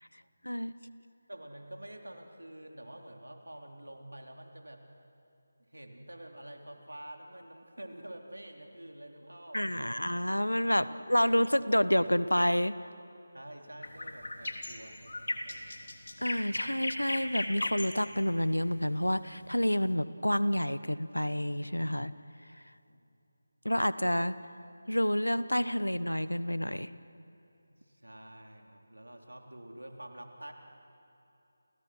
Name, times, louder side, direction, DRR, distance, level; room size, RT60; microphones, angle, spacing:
voice 1, 1.3-4.9 5.7-10.0 10.7-11.3 13.3-15.9 22.7-23.1 27.7-30.5, right 1 dB, 80° right, 2 dB, 3.6 m, -48 dB
voice 2, 9.5-12.8 16.2-22.1 23.6-24.3 24.9-26.9, equal, 90° left, 15 dB, 1.1 m, -29 dB
sound 1, 13.8-19.9, left 2 dB, 65° left, 3.1 m, -37 dB
30.0 x 30.0 x 6.3 m, 2.8 s
figure-of-eight pair, 160°, 0 cm